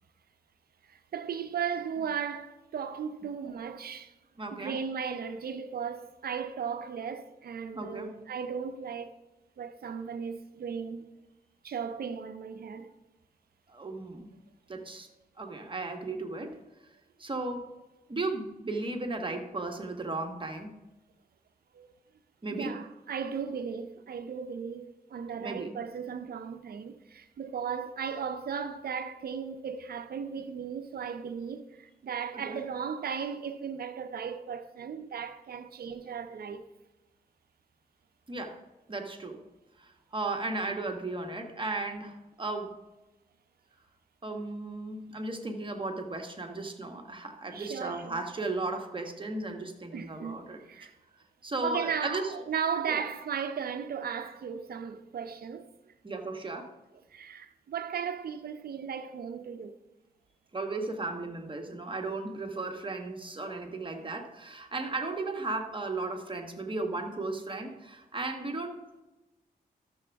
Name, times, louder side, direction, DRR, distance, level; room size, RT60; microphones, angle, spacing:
voice 1, 0.9-4.1 4.5-9.1 9.6-11.1 11.6-12.9 21.7-21.9 22.5-36.7 47.5-48.2 49.9-50.9 51.6-55.7 57.1-59.8, right 7 dB, 70° right, 0.6 m, -36 dB
voice 2, 4.4-4.8 7.7-8.2 13.7-14.3 14.7-15.1 15.4-16.6 17.2-17.7 18.1-20.8 22.4-22.8 25.3-25.7 32.3-32.6 38.3-38.6 38.9-39.4 39.8-42.7 44.2-50.9 51.4-52.3 52.9-53.1 56.0-56.7 60.5-69.0, right 2 dB, 30° right, 1.2 m, -35 dB
12.5 x 7.0 x 3.4 m
cardioid pair, 80°, 16 cm